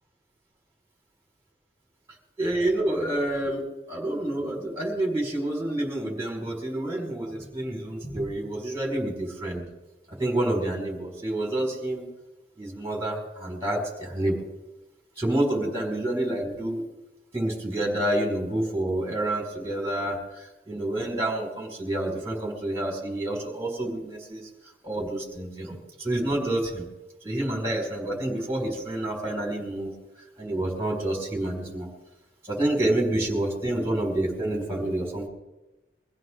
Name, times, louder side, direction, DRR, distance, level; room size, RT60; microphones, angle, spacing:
voice 1, 2.4-3.6 3.9-9.6 10.1-12.0 12.6-14.4 15.2-16.8 17.3-24.5 24.8-26.8 27.2-29.9 30.4-31.9 32.5-35.3, right 1 dB, 15° right, -1 dB, 5.0 m, -28 dB
23.5 x 15.5 x 3.8 m, 1.0 s
head